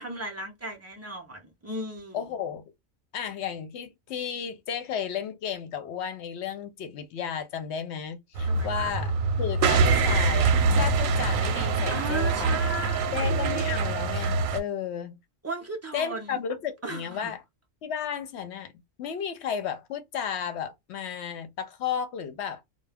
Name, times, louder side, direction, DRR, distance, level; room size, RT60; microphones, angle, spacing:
voice 1, 0.0-2.4 8.4-8.9 11.9-13.3 15.4-16.4 16.8-17.3, right 2 dB, 25° right, 0.3 m, -36 dB
voice 2, 2.1-2.6 3.1-9.1 9.4-12.6 13.1-15.2 15.9-17.4 17.8-18.7 19.0-22.6, left 8 dB, 65° left, 0.7 m, -33 dB
sound 1, 8.4-14.6, right 4 dB, 85° right, 1.0 m, -24 dB
2.2 x 2.1 x 3.3 m
omnidirectional pair, 1.4 m